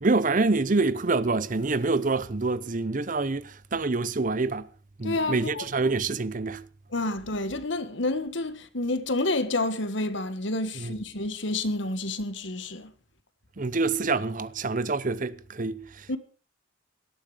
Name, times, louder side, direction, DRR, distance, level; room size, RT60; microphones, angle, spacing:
voice 1, 0.0-4.7 5.0-6.6 10.8-10.9 13.6-16.2, right 3 dB, 40° right, 0.7 m, -26 dB
voice 2, 5.0-5.7 6.9-12.9 16.1-16.2, left 2 dB, 70° left, 1.6 m, -29 dB
18.0 x 12.5 x 5.0 m
head